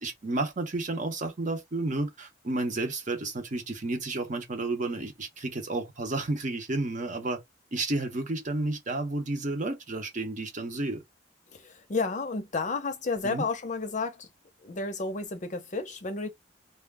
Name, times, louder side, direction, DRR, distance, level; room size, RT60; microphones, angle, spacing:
voice 1, 0.0-7.4 7.7-11.0 13.2-13.5, right 2 dB, 45° right, 0.8 m, -31 dB
voice 2, 11.5-14.3 14.6-16.3, left 3 dB, 45° left, 0.6 m, -31 dB
2.3 x 2.1 x 3.3 m
head